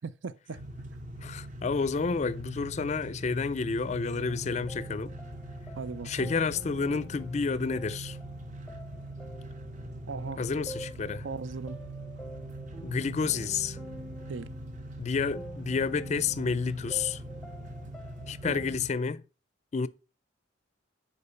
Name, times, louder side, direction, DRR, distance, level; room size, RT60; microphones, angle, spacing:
voice 1, 0.0-0.6 5.7-6.3 10.1-10.5 11.2-11.8 14.3-14.5 18.4-18.6, right 4 dB, 75° right, 0.6 m, -38 dB
sound 1, 0.5-18.9, right 1 dB, 40° right, 0.9 m, -42 dB
voice 2, 1.2-5.1 6.1-8.2 10.4-11.3 12.8-13.8 15.0-17.2 18.3-19.2 19.7-19.9, left 5 dB, 35° left, 0.4 m, -30 dB
sound 2, 4.3-18.8, right 1 dB, ahead, 0.7 m, -47 dB
6.8 x 4.8 x 5.4 m
head